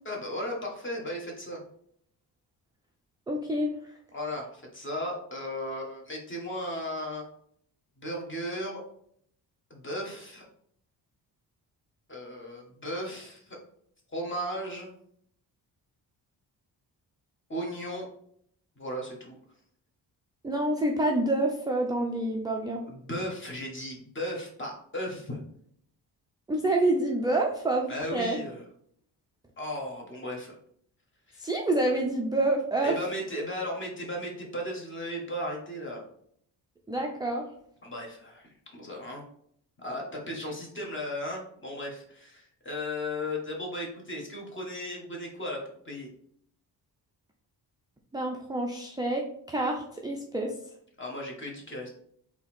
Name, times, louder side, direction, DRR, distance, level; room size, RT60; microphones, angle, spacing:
voice 1, 0.0-1.6 4.1-7.2 8.0-8.8 9.7-10.4 12.1-13.6 14.1-14.9 17.5-18.1 18.8-19.3 22.9-25.4 27.9-28.6 29.6-30.6 31.3-31.5 32.8-36.0 37.8-39.2 39.8-46.1 51.0-51.9, left 1 dB, 25° left, -1 dB, 1.3 m, -36 dB
voice 2, 3.3-3.7 20.4-22.8 26.5-28.4 31.4-33.0 36.9-37.4 48.1-49.2 49.5-50.5, right 2 dB, 10° right, 0 dB, 0.4 m, -27 dB
4.1 x 2.9 x 4.2 m, 0.66 s
cardioid pair, 115°, 43 cm